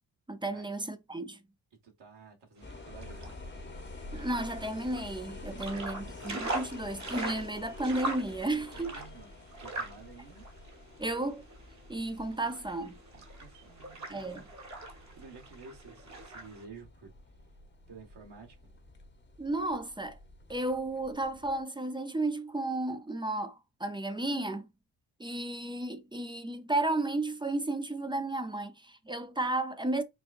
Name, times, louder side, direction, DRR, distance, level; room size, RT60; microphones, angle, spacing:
voice 1, 0.3-1.4 4.1-8.9 11.0-11.4 11.9-13.0 14.1-14.4 19.4-20.2 20.5-24.7 25.2-30.0, right 2 dB, 10° right, 0.5 m, -33 dB
voice 2, 1.8-3.5 5.5-6.3 8.7-9.3 9.6-10.4 13.1-14.5 15.1-17.1 17.9-18.7, right 4 dB, 55° right, 1.7 m, -52 dB
sound 1, 2.6-21.6, left 2 dB, 20° left, 1.0 m, -48 dB
sound 2, 2.6-16.6, right 2 dB, 35° right, 1.3 m, -42 dB
5.3 x 2.3 x 2.5 m
supercardioid pair, 55°, 49 cm